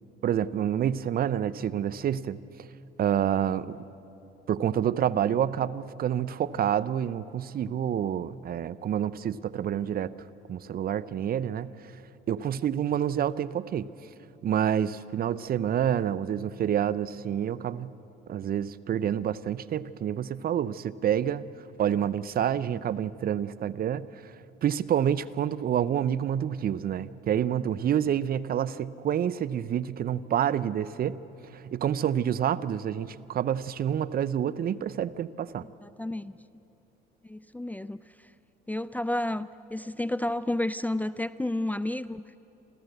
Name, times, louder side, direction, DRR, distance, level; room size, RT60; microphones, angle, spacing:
voice 1, 0.2-2.4 3.0-3.8 4.5-10.1 10.5-11.9 12.3-13.9 14.4-17.9 18.3-21.5 21.8-24.3 24.6-31.2 31.5-35.7, right 9 dB, 50° right, 17 dB, 0.6 m, -28 dB
voice 2, 35.8-36.3 37.2-38.0 38.7-42.2, left 1 dB, 10° left, 15 dB, 0.4 m, -31 dB
27.5 x 14.5 x 8.1 m, 3.0 s
supercardioid pair, 80°, 20 cm